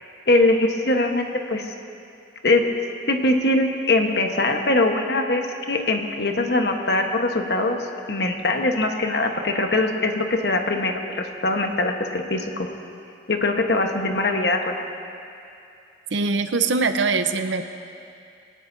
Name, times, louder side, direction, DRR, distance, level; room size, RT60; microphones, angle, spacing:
voice 1, 0.3-1.7 2.4-2.7 3.1-12.7 13.3-14.8, left 2 dB, 60° left, 3 dB, 1.2 m, -22 dB
voice 2, 16.1-17.6, right 4 dB, 90° right, 8 dB, 0.7 m, -22 dB
20.0 x 18.0 x 2.7 m, 2.6 s
head